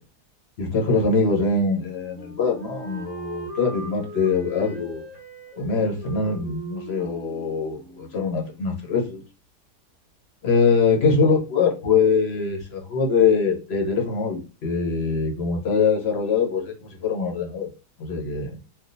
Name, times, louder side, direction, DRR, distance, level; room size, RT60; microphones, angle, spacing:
voice 1, 0.6-5.0 5.6-9.2 10.4-17.7 18.0-18.5, left 5 dB, 50° left, 1 dB, 1.0 m, -23 dB
Wind instrument woodwind instrument, 1.7-8.5, right 1 dB, 10° right, 0.8 m, -40 dB
3.4 x 2.4 x 2.6 m, 0.33 s
omnidirectional pair, 1.7 m